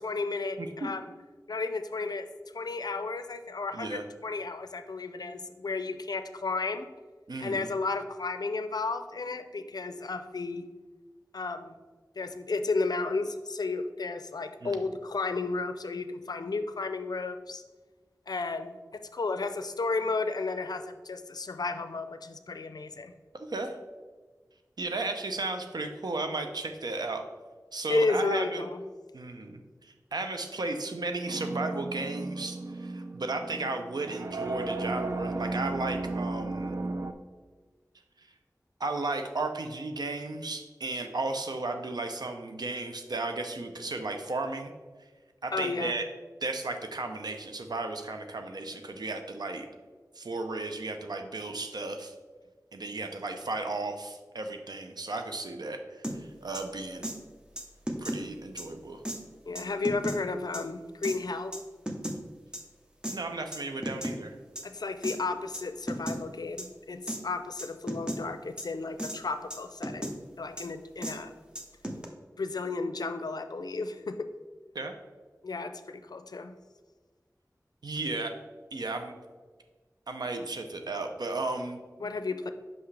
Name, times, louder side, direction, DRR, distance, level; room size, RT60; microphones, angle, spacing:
voice 1, 0.0-1.1 1.5-2.3 2.5-6.8 7.4-10.7 11.3-11.8 12.2-17.6 18.3-23.1 27.9-28.8 45.5-45.9 59.5-61.5 64.6-71.3 72.4-74.3 75.4-76.6 82.0-82.5, left 3 dB, 75° left, 9 dB, 0.4 m, -33 dB
voice 2, 0.6-0.9 3.7-4.0 7.3-7.7 14.6-14.8 23.3-23.8 24.8-27.2 27.7-28.6 29.1-36.8 38.8-44.7 45.4-46.0 46.4-49.7 50.2-52.1 52.7-57.1 58.0-59.0 63.1-64.4 74.7-74.9 77.8-78.3 78.7-79.1 80.1-81.8, right 2 dB, 90° right, 5 dB, 0.6 m, -34 dB
sound 1, 31.3-37.1, right 2 dB, 45° right, 0.4 m, -34 dB
sound 2, 56.0-56.2 56.5-56.6 57.0-57.2 57.6-58.2 58.6-58.7 59.1-59.2 59.6-60.2 60.5-60.6 61.0-61.2 61.5-62.2 62.5-62.6 63.0-63.2 63.5-64.2 64.6-64.7 65.0-65.2 65.5-65.6 65.9-66.2 66.6-66.7 67.1-67.2 67.6-68.2 68.6-68.7 69.0-69.2 69.5-70.1 70.6-70.7 71.0-71.1 71.6-72.1, equal, 15° right, 0.8 m, -34 dB
5.8 x 5.4 x 3.3 m, 1.4 s
wide cardioid pair, 60°, 7 cm